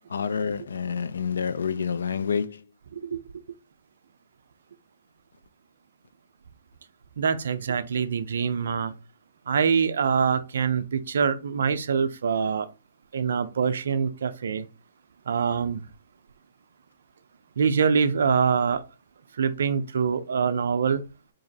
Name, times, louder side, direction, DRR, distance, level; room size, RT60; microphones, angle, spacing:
voice 1, 0.1-2.6, left 6 dB, 85° left, 0.4 m, -28 dB
voice 2, 7.2-8.9 9.5-12.7 13.1-14.7 15.3-15.9 17.6-18.8 19.4-21.0, right 6 dB, 75° right, 0.4 m, -24 dB
3.9 x 2.9 x 2.7 m
hypercardioid pair, 135°, 0 cm